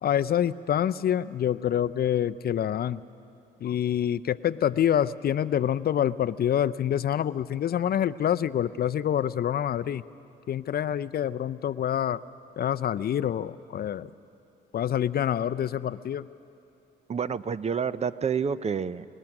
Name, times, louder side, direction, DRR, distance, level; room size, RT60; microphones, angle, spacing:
voice 1, 0.0-3.0 3.6-10.0 10.5-12.2 12.6-14.1 14.7-16.3, left 10 dB, 50° left, 15 dB, 0.5 m, -26 dB
voice 2, 17.1-19.1, right 6 dB, 35° right, 16 dB, 0.5 m, -28 dB
25.5 x 21.5 x 6.0 m, 2.6 s
cardioid pair, 90°, 20 cm